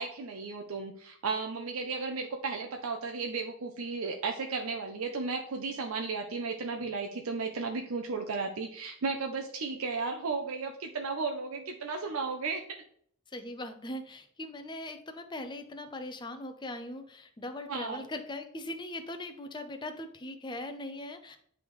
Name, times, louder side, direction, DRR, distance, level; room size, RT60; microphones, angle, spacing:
voice 1, 0.0-12.6 17.7-18.1, right 4 dB, 85° right, 3 dB, 0.6 m, -34 dB
voice 2, 13.3-21.4, left 1 dB, 20° left, 7 dB, 0.6 m, -40 dB
9.9 x 3.5 x 3.1 m, 0.63 s
head